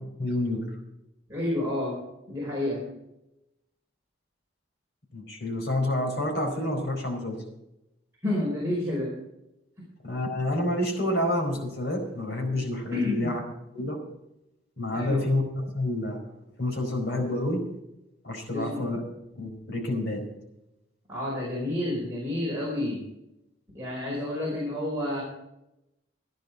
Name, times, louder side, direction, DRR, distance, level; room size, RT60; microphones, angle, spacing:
voice 1, 0.2-0.6 5.1-7.4 10.0-13.4 13.7-14.0 14.8-16.3 16.6-17.6 18.2-19.0 19.4-20.2, left 1 dB, 60° left, 2 dB, 4.5 m, -28 dB
voice 2, 1.3-2.0 2.3-2.9 8.2-9.1 12.9-13.3 14.9-15.3 18.5-19.0 21.1-23.1 23.7-25.2, left 1 dB, 15° right, -5 dB, 4.8 m, -29 dB
15.0 x 10.5 x 4.9 m, 0.87 s
head